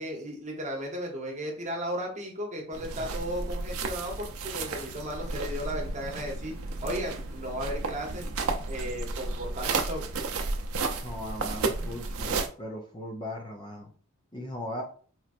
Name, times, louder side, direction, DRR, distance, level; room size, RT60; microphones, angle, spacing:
voice 1, 0.0-6.5 6.8-8.2 8.6-10.1, equal, 35° right, 0 dB, 1.0 m, -35 dB
sound 1, 2.7-12.5, right 3 dB, 80° right, 0.6 m, -33 dB
voice 2, 11.0-13.9 14.3-14.8, left 1 dB, 20° left, 0 dB, 0.6 m, -38 dB
4.4 x 3.0 x 2.5 m, 0.43 s
head